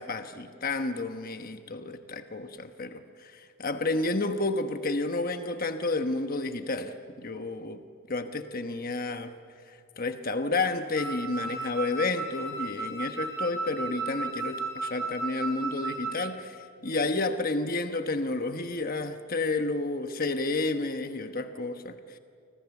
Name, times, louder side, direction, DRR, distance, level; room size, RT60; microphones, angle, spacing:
voice 1, 0.0-7.8 8.1-9.3 10.0-16.6 16.8-22.0, left 2 dB, 40° left, 8 dB, 1.1 m, -31 dB
Wind instrument woodwind instrument, 11.0-16.3, right 3 dB, 70° right, 4.8 m, -35 dB
29.0 x 25.5 x 7.2 m, 2.4 s
head